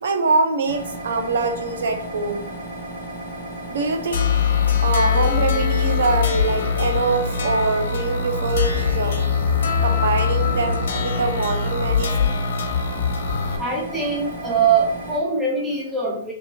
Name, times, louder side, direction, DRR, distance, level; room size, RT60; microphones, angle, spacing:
voice 1, 0.0-2.4 3.7-4.3 4.8-9.3 9.8-12.4, right 4 dB, 80° right, 6 dB, 0.8 m, -24 dB
sound 1, 0.6-15.2, right 1 dB, 50° right, 1.5 m, -34 dB
sound 2, 4.1-13.6, left 6 dB, 70° left, 0.8 m, -22 dB
voice 2, 13.6-16.3, right 5 dB, 5° right, -4 dB, 0.6 m, -22 dB
3.3 x 3.0 x 4.4 m, 0.67 s
hypercardioid pair, 175°, 0 cm